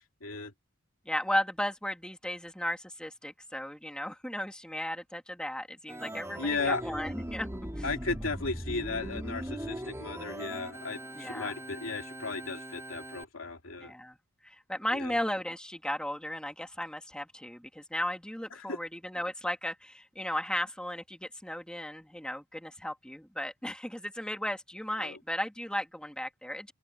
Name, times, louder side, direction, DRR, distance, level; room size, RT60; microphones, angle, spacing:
voice 1, 0.2-0.5 6.4-6.8 7.8-13.9 14.9-15.2 18.7-18.8 25.0-25.2, left 4 dB, 75° left, 2.9 m, -35 dB
voice 2, 1.1-7.5 7.8-7.9 11.1-11.6 13.8-14.2 14.4-26.7, left 1 dB, 5° left, 2.1 m, -35 dB
Organ, 5.9-13.2, right 1 dB, 15° right, 3.5 m, -40 dB
open air
head